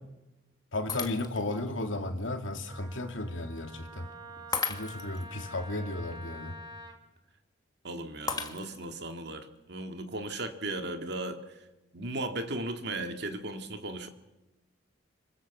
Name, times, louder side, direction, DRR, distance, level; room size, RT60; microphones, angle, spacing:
voice 1, 0.7-4.1 4.7-6.5, left 2 dB, 75° left, 5 dB, 2.6 m, -34 dB
Shatter, 0.9-1.6 2.2-2.3 4.5-5.3 8.3-9.0, left 5 dB, 20° left, 1.6 m, -35 dB
Wind instrument woodwind instrument, 2.7-7.0, equal, 20° right, 3.3 m, -47 dB
voice 2, 7.8-11.4 11.9-14.1, right 2 dB, 60° right, 6 dB, 2.2 m, -36 dB
25.5 x 23.0 x 7.3 m, 1.0 s
head